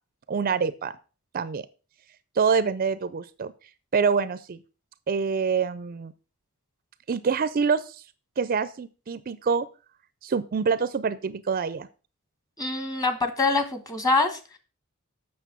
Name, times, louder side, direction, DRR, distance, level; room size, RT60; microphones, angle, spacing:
voice 1, 0.3-0.9 1.3-1.7 2.4-3.5 3.9-4.6 5.1-6.1 7.1-8.0 8.4-9.7 10.2-11.9, right 5 dB, 40° right, 15 dB, 0.4 m, -26 dB
voice 2, 12.6-14.6, left 3 dB, 15° left, 8 dB, 1.3 m, -25 dB
8.1 x 6.2 x 6.0 m, 0.35 s
head